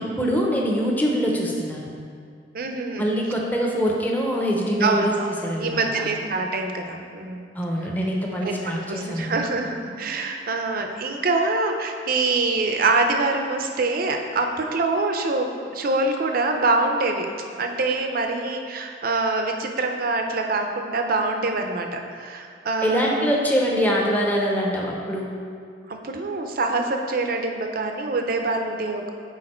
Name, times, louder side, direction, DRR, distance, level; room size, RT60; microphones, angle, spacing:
voice 1, 0.0-1.9 3.0-6.1 7.5-9.4 22.8-25.3, equal, 10° left, -2 dB, 0.7 m, -24 dB
voice 2, 2.5-3.1 4.8-7.5 8.4-8.6 8.9-17.3 17.6-23.2 25.9-29.1, right 3 dB, 55° right, 4 dB, 0.6 m, -25 dB
6.4 x 4.7 x 4.3 m, 2.2 s
head